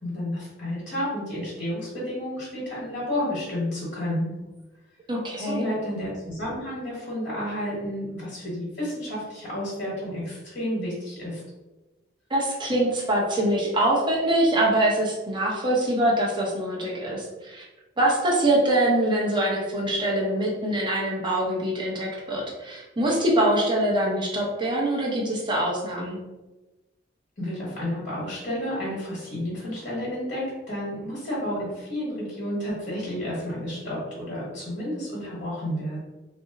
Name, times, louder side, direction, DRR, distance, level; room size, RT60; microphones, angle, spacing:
voice 1, 0.0-4.3 5.4-11.4 27.4-36.0, left 1 dB, 50° left, -7 dB, 1.2 m, -31 dB
voice 2, 5.1-5.7 12.3-17.6 18.0-26.2, right 1 dB, 25° right, -2 dB, 0.7 m, -24 dB
2.5 x 2.0 x 3.7 m, 1.1 s
head